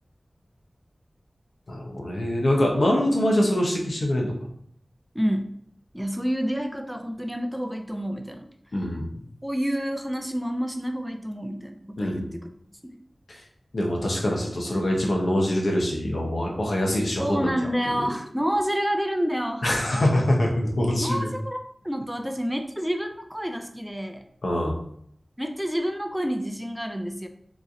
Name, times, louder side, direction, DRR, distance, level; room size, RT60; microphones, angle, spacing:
voice 1, 1.7-4.3 8.7-9.0 12.0-12.3 13.3-13.4 13.7-17.5 17.9-18.1 19.6-21.3 24.4-24.8, left 1 dB, 75° left, -1 dB, 0.8 m, -24 dB
voice 2, 5.1-5.6 5.9-8.5 9.4-12.4 12.8-13.0 17.2-19.7 21.0-21.6 21.8-24.2 25.4-27.3, equal, 5° right, 6 dB, 0.4 m, -28 dB
3.7 x 3.1 x 2.6 m, 0.68 s
wide cardioid pair, 60°, 0 cm